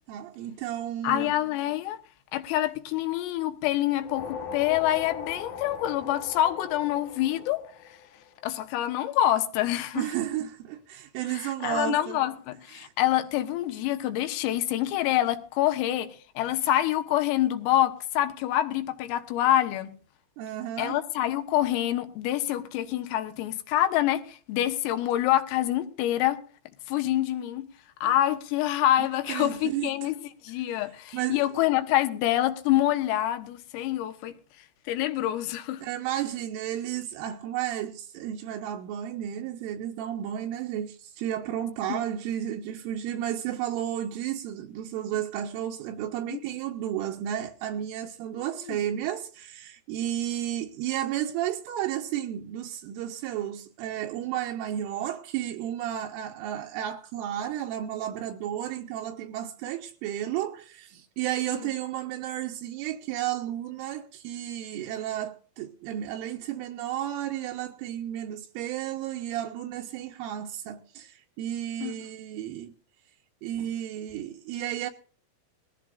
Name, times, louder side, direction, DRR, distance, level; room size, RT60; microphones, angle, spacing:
voice 1, 0.1-1.3 10.0-12.2 12.8-12.9 20.4-21.0 29.0-29.9 31.1-31.4 35.8-72.7 73.4-74.9, right 11 dB, 80° right, 3.4 m, -32 dB
voice 2, 1.0-2.0 2.3-7.6 8.4-10.1 11.3-19.9 20.8-26.4 26.9-27.7 28.0-30.2 30.4-34.3 34.9-35.8 41.9-42.0 46.3-46.4 48.4-48.8 61.5-61.6 71.8-71.9, left 13 dB, 85° left, 3.9 m, -26 dB
sound 1, 3.9-8.4, left 6 dB, 70° left, 1.7 m, -39 dB
21.0 x 15.5 x 2.5 m
omnidirectional pair, 5.9 m